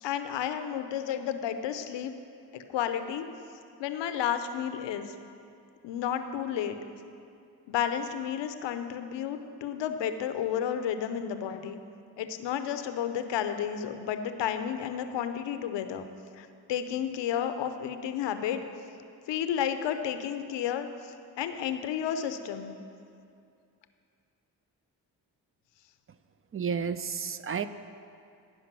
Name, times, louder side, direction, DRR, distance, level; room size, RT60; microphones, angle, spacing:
voice 1, 0.0-2.1 2.5-3.2 3.8-5.1 5.8-6.8 7.7-11.8 12.2-16.1 16.4-18.6 19.3-20.9 21.4-22.8, left 9 dB, 80° left, 9 dB, 0.6 m, -32 dB
voice 2, 26.5-27.7, right 6 dB, 30° right, 12 dB, 0.4 m, -31 dB
11.0 x 5.1 x 5.9 m, 2.5 s
supercardioid pair, 45°, 43 cm